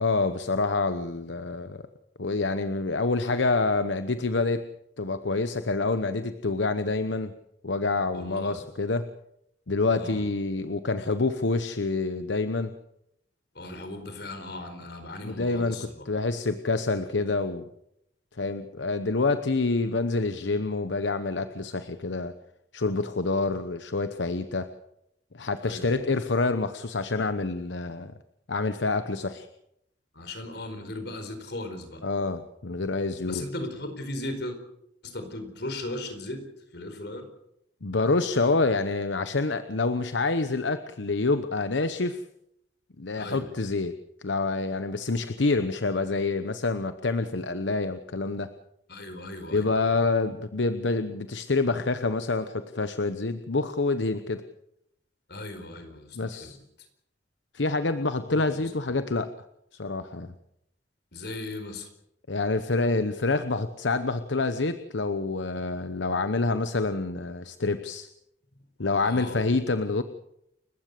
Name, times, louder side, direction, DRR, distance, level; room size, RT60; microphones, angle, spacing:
voice 1, 0.0-1.8 2.2-4.6 5.0-7.3 7.6-9.1 9.7-12.7 15.2-15.8 16.0-17.6 18.4-22.3 22.7-24.7 25.3-28.1 28.5-29.5 32.0-33.4 37.8-42.2 43.0-43.9 44.2-48.5 49.5-54.5 56.1-56.6 57.5-59.3 59.7-60.3 62.3-68.1 68.8-70.0, left 3 dB, 80° left, 10 dB, 1.0 m, -27 dB
voice 2, 8.1-8.6 9.9-10.3 13.5-16.0 25.6-26.0 30.1-32.0 33.2-34.6 35.0-36.4 36.7-37.3 43.2-43.5 48.9-49.9 55.3-56.6 58.3-59.0 61.1-61.9 69.0-69.4, left 1 dB, 60° left, 8 dB, 4.4 m, -37 dB
29.5 x 15.0 x 6.7 m, 0.79 s
head